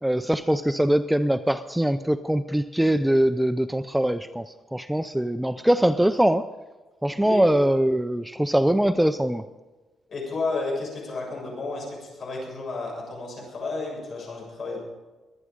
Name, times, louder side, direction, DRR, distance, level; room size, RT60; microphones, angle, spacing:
voice 1, 0.0-6.5 7.0-9.5, right 1 dB, 5° right, 11 dB, 0.4 m, -22 dB
voice 2, 10.1-14.8, left 3 dB, 45° left, -1 dB, 6.9 m, -32 dB
22.5 x 9.6 x 5.0 m, 1.2 s
cardioid pair, 155°, 0 cm